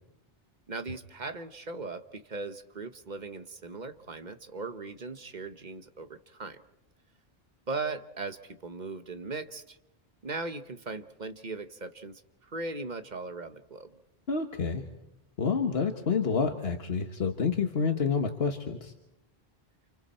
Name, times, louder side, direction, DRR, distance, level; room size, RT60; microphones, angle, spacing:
voice 1, 0.7-6.6 7.7-9.8 10.2-13.9, right 3 dB, 45° right, 9 dB, 1.3 m, -38 dB
voice 2, 14.3-14.8 15.4-18.9, left 5 dB, 75° left, 4 dB, 1.6 m, -28 dB
29.0 x 29.0 x 4.4 m, 0.86 s
omnidirectional pair, 1.0 m